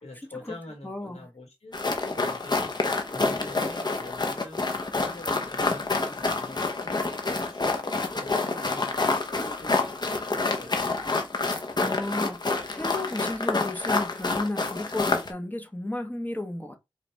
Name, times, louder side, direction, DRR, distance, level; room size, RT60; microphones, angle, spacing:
voice 1, 0.0-2.7 3.1-7.0 7.4-11.1, left 2 dB, 85° left, 1.5 m, -45 dB
voice 2, 0.8-1.3 11.8-12.4 12.7-16.8, left 1 dB, 15° left, 1.2 m, -33 dB
sound 1, 1.7-15.3, left 3 dB, 45° left, 0.9 m, -28 dB
4.8 x 2.6 x 3.4 m
cardioid pair, 45°, 10 cm